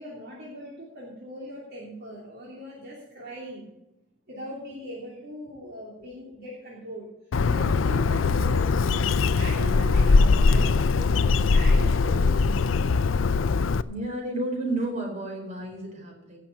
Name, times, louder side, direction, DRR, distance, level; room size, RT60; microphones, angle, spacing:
voice 1, 0.0-3.7 4.3-7.1 7.5-8.8 9.2-12.7, equal, 55° right, -5 dB, 2.9 m, -40 dB
Bird, 7.3-13.8, left 4 dB, 90° left, 0.5 m, -21 dB
voice 2, 13.8-16.4, right 2 dB, 35° right, 0 dB, 4.6 m, -32 dB
16.5 x 6.8 x 5.8 m, 0.94 s
head